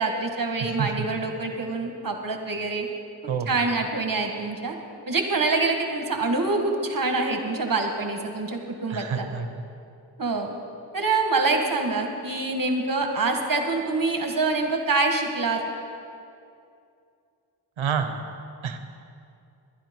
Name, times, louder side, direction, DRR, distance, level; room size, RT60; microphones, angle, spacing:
voice 1, 0.0-2.9 3.5-4.7 5.1-9.3 10.2-10.5 10.9-15.6, right 3 dB, 45° right, 3 dB, 1.7 m, -25 dB
voice 2, 3.3-3.6 8.9-9.6 17.8-18.2 18.6-18.8, right 6 dB, 80° right, 8 dB, 1.0 m, -28 dB
11.0 x 10.5 x 5.4 m, 2.5 s
cardioid pair, 55°, 47 cm